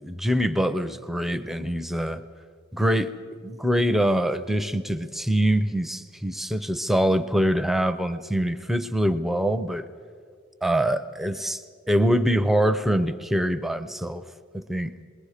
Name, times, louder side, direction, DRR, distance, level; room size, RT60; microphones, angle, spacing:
voice 1, 0.0-2.2 2.7-3.1 3.4-9.9 10.6-14.2 14.5-14.9, equal, ahead, 0.5 m, -24 dB
27.5 x 21.0 x 4.9 m
head